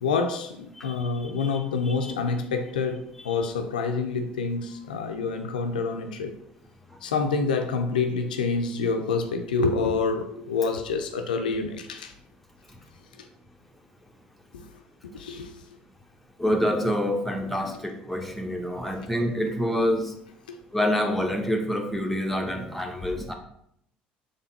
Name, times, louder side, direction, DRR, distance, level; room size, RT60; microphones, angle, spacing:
voice 1, 0.0-6.3 7.0-12.1 14.5-15.6 20.5-20.6, left 4 dB, 85° left, 5 dB, 0.4 m, -27 dB
voice 2, 16.4-20.1 20.7-23.3, equal, 5° left, 2 dB, 0.9 m, -27 dB
4.2 x 3.2 x 3.9 m, 0.74 s
hypercardioid pair, 60°, 5 cm